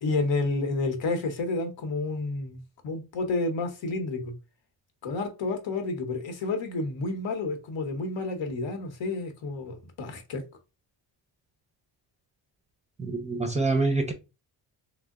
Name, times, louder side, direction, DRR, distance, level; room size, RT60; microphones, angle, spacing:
voice 1, 0.0-2.6 2.8-4.3 5.0-10.4, left 3 dB, 75° left, 1.0 m, -30 dB
voice 2, 13.0-14.1, right 3 dB, 15° right, 0.4 m, -26 dB
3.3 x 2.1 x 3.5 m
wide cardioid pair, 165°, 44 cm